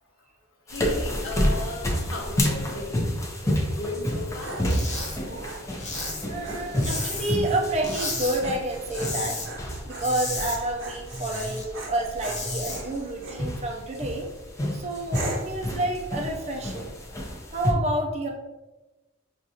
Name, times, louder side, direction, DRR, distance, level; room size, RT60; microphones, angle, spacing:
voice 1, 0.7-3.1 3.4-4.6, left 2 dB, 70° left, -3 dB, 1.0 m, -36 dB
sound 1, 0.7-17.7, left 1 dB, 15° left, 0.5 m, -30 dB
Dog, 4.0-13.5 14.0-14.4 15.1-15.6, right 2 dB, 70° right, 0.7 m, -40 dB
sound 2, 4.6-5.2 5.5-7.5 7.8-8.4 8.7-9.5 9.8-11.6 12.0-12.8, left 2 dB, 35° left, 1.1 m, -33 dB
voice 2, 5.0-9.4 9.9-14.3 14.7-16.9 17.5-18.3, right 1 dB, 35° right, 0 dB, 0.5 m, -29 dB
6.2 x 2.4 x 2.7 m, 1.1 s
head